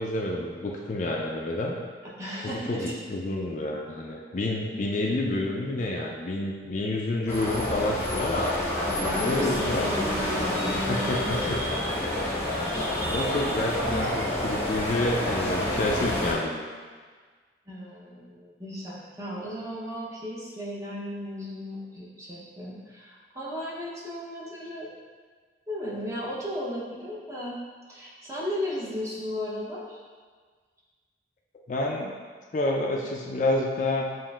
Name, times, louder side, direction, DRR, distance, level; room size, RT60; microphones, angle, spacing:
voice 1, 0.0-1.8 2.4-8.5 9.3-9.9 10.9-11.6 12.7-16.7 31.7-32.1 32.5-34.1, left 2 dB, 40° left, -1 dB, 0.4 m, -29 dB
voice 2, 2.0-2.9 8.9-11.5 17.7-24.9 25.7-27.6 27.9-30.0, left 1 dB, 15° right, -6 dB, 0.7 m, -35 dB
sound 1, 7.3-16.3, left 1 dB, 15° left, 0.8 m, -28 dB
7.2 x 2.5 x 2.4 m, 1.5 s
head